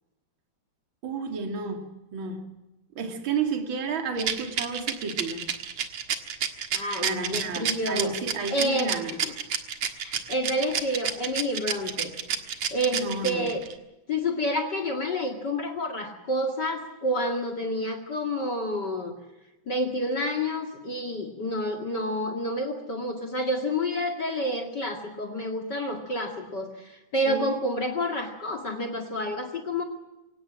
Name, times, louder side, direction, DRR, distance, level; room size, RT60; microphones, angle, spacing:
voice 1, 1.0-2.5 2.9-5.4 7.0-9.1 12.9-13.5 27.3-27.5, right 5 dB, 35° right, 5 dB, 2.3 m, -31 dB
Rattle, 4.2-13.7, right 8 dB, 70° right, 1.5 m, -29 dB
voice 2, 6.7-8.1 8.5-9.3 9.9-12.1 12.7-13.6 14.1-19.1 19.6-29.8, equal, 50° left, 7 dB, 1.2 m, -29 dB
26.0 x 17.5 x 7.5 m, 0.99 s
omnidirectional pair, 5.5 m